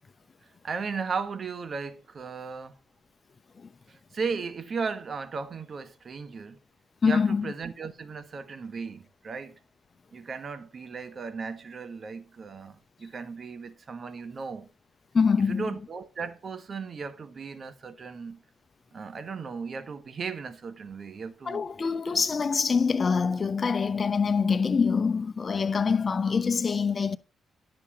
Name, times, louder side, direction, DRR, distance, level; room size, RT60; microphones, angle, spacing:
voice 1, 0.6-2.7 3.9-6.6 7.0-9.5 10.1-14.7 15.5-18.4 18.9-21.7 22.1-22.2, right 5 dB, 50° right, 1.5 m, -36 dB
voice 2, 7.0-7.5 15.1-15.7 21.5-27.2, left 5 dB, 45° left, 0.9 m, -25 dB
10.5 x 7.0 x 4.2 m
supercardioid pair, 55°, 0 cm